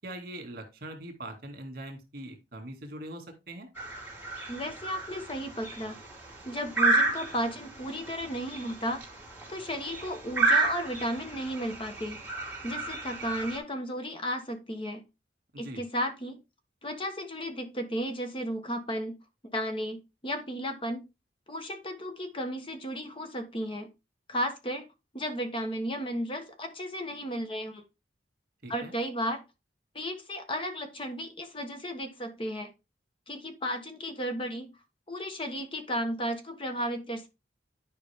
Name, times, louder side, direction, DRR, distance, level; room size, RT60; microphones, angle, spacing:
voice 1, 0.0-3.7 15.5-15.8 28.6-28.9, right 1 dB, 55° right, 2.2 m, -42 dB
sound 1, 3.8-13.6, right 3 dB, 10° right, 2.7 m, -31 dB
voice 2, 4.5-6.0 6.4-9.0 9.5-12.2 12.6-15.0 15.6-16.4 16.8-19.1 19.5-21.0 21.5-23.9 24.3-24.9 25.1-27.8 28.7-29.4 29.9-32.7 33.3-34.7 35.1-37.3, equal, 30° left, 1.2 m, -34 dB
10.5 x 5.2 x 3.5 m
head